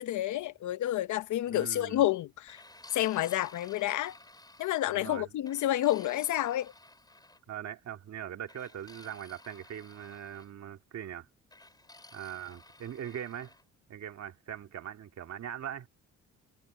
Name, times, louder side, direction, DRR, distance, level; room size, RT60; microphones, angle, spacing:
voice 1, 0.0-2.6 2.9-4.2 4.6-6.7, left 13 dB, 75° left, 0.9 m, -29 dB
voice 2, 1.5-2.0 4.9-5.3 7.5-11.3 12.1-13.5 13.9-15.9, right 10 dB, 60° right, 2.1 m, -41 dB
sound 1, 2.5-5.0 5.5-7.4 8.5-10.5 11.5-13.6, left 2 dB, 15° left, 4.7 m, -55 dB
cardioid pair, 90°, 30 cm